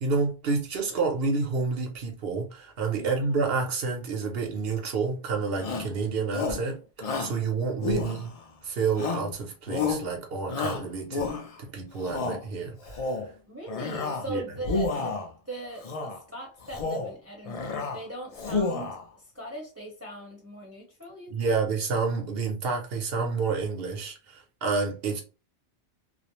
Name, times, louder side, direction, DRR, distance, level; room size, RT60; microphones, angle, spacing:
voice 1, 0.0-6.8 7.2-8.3 8.6-11.3 11.6-13.0 14.3-14.4 21.3-25.2, right 4 dB, 70° right, 1.0 m, -29 dB
voice 2, 2.9-3.4 13.5-15.2 15.5-21.5, right 1 dB, 15° right, 0.7 m, -40 dB
Shout, 5.6-5.9 6.3-6.7 7.0-7.4 7.8-8.5 9.0-9.3 9.7-10.1 10.5-11.6 12.0-12.4 12.8-13.3 13.7-14.3 14.6-15.3 15.8-16.2 16.6-17.1 17.5-18.0 18.3-19.0, left 3 dB, 50° left, 0.5 m, -30 dB
2.4 x 2.0 x 2.9 m
omnidirectional pair, 1.0 m